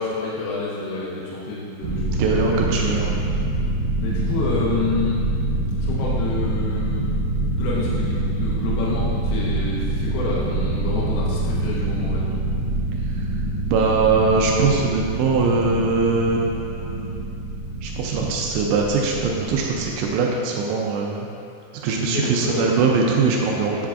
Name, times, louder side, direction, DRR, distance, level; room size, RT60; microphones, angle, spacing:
voice 1, 0.0-2.0 2.4-2.9 4.0-5.2 5.8-7.2 7.6-12.3 22.0-22.6, left 3 dB, 75° left, -6 dB, 2.3 m, -28 dB
sound 1, 1.8-20.1, right 2 dB, 70° right, 1.9 m, -25 dB
voice 2, 2.1-3.1 13.7-17.2 17.8-21.3 21.8-23.9, right 4 dB, 90° right, -1 dB, 3.0 m, -21 dB
8.9 x 7.2 x 2.5 m, 2.5 s
omnidirectional pair, 5.2 m